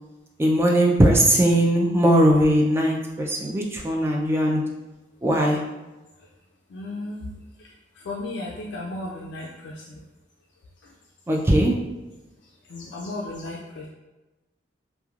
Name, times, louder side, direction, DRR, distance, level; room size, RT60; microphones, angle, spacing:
voice 1, 0.4-4.6 5.2-5.6 11.3-11.7, right 1 dB, 15° right, -1 dB, 0.3 m, -19 dB
voice 2, 6.7-7.2 8.1-9.5 12.7-13.6, left 2 dB, 75° left, -3 dB, 0.3 m, -33 dB
3.0 x 2.1 x 2.3 m, 1.1 s
head